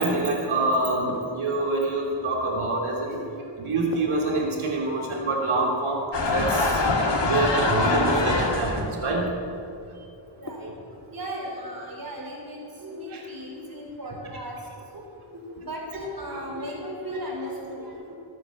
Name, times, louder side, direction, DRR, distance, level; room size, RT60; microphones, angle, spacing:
voice 1, 0.0-3.2 3.6-6.8 7.2-9.3 13.1-13.2, right 2 dB, 85° right, -1 dB, 3.2 m, -26 dB
sound 1, 1.1-1.9 3.9-5.0 7.1-7.9 10.5-11.1, left 1 dB, 35° left, 2.6 m, -40 dB
sound 2, 6.1-8.9, left 3 dB, 60° left, 2.4 m, -23 dB
voice 2, 10.4-10.7 11.1-14.6 14.9-15.0 15.4-17.9, equal, 45° right, -1 dB, 4.3 m, -36 dB
20.5 x 9.2 x 7.7 m, 2.6 s
wide cardioid pair, 80°, 48 cm